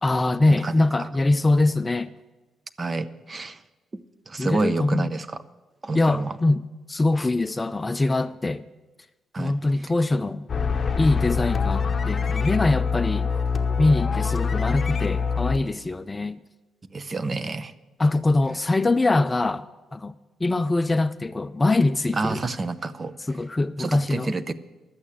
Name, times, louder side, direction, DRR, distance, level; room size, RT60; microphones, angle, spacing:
voice 1, 0.0-2.1 4.4-5.1 5.9-8.6 9.4-10.5 11.0-13.3 13.8-16.4 18.0-19.7 19.9-20.1 20.4-22.4 23.3-24.3, left 2 dB, 20° left, 0.4 m, -23 dB
voice 2, 0.6-1.1 2.8-3.6 4.3-5.4 5.8-6.4 9.3-9.6 16.9-17.7 22.1-23.1 23.8-24.5, right 3 dB, 30° right, 0.7 m, -28 dB
sound 1, 10.5-15.6, left 5 dB, 35° left, 0.9 m, -24 dB
12.0 x 8.5 x 8.7 m
cardioid pair, 90°, 0 cm